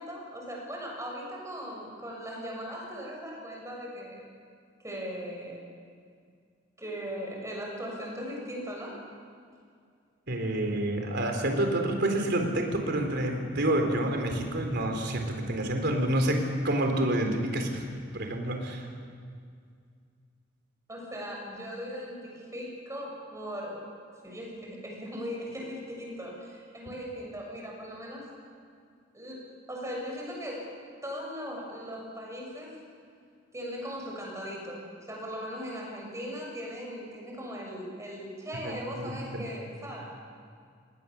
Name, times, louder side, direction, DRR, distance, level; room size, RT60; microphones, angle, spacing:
voice 1, 0.0-4.2 4.8-5.6 6.8-8.9 20.9-23.8 24.2-28.3 29.1-30.7 31.0-32.8 33.5-40.1, equal, 15° right, -2 dB, 6.8 m, -39 dB
voice 2, 10.3-17.9 18.1-18.9 38.6-39.4, right 1 dB, 60° right, 3 dB, 3.8 m, -28 dB
28.0 x 19.5 x 7.2 m, 2.2 s
head